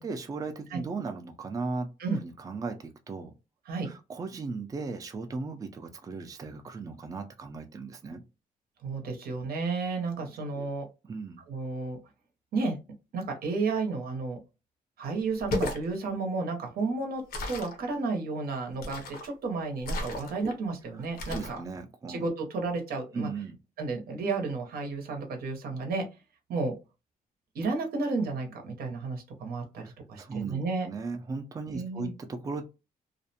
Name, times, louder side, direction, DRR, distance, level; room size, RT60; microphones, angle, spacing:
voice 1, 0.0-1.9 2.2-3.3 3.8-8.2 10.2-10.7 11.1-11.4 20.9-22.2 23.1-23.6 29.8-32.6, right 4 dB, 25° right, 6 dB, 0.4 m, -37 dB
voice 2, 8.8-10.8 11.5-12.0 12.5-12.8 13.1-14.4 15.0-17.2 17.5-21.6 22.1-23.3 23.8-26.1 26.5-26.7 27.5-29.8 30.1-30.9 31.7-32.1, right 3 dB, 85° right, 3 dB, 0.8 m, -32 dB
sound 1, 15.3-15.9 17.3-17.8 18.8-19.3 19.8-20.5 21.2-21.6, left 2 dB, 85° left, 0.7 m, -34 dB
2.4 x 2.1 x 2.7 m, 0.28 s
cardioid pair, 130°, 15 cm